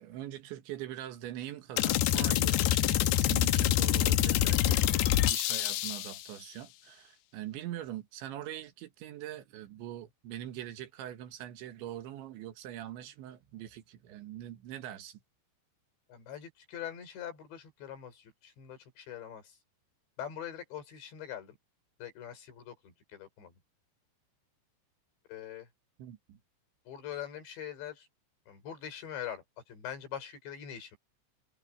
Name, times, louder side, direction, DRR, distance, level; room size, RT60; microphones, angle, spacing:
voice 1, 0.0-15.2 26.0-26.4, right 12 dB, 70° right, 3.7 m, -43 dB
sound 1, 1.8-6.2, left 12 dB, 80° left, 2.4 m, -26 dB
voice 2, 16.1-19.6 20.2-21.6 22.0-23.6 25.3-25.7 26.9-28.1 28.5-31.0, left 9 dB, 60° left, 7.3 m, -43 dB
omnidirectional pair, 5.9 m